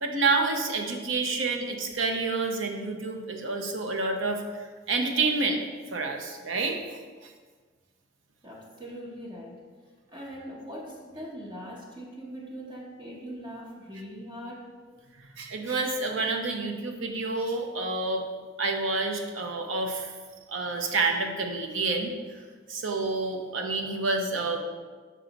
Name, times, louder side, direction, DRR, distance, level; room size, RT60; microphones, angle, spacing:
voice 1, 0.0-4.4 4.9-5.6 5.9-6.8 15.4-18.3 18.6-20.1 20.5-22.1 22.7-24.6, right 3 dB, 85° right, 3 dB, 0.7 m, -28 dB
voice 2, 8.4-9.6 10.1-14.7, equal, 20° right, -4 dB, 0.8 m, -41 dB
6.1 x 4.6 x 3.9 m, 1.5 s
head